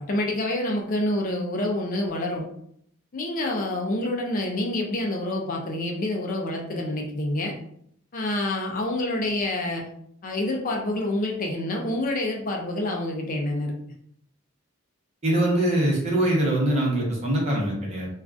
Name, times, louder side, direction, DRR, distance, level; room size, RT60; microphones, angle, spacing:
voice 1, 0.0-2.4 3.1-7.5 8.1-9.8 10.2-13.7, left 1 dB, 40° left, 1 dB, 0.4 m, -27 dB
voice 2, 15.2-18.1, right 1 dB, 30° right, -3 dB, 0.9 m, -23 dB
3.5 x 2.3 x 2.4 m, 0.69 s
head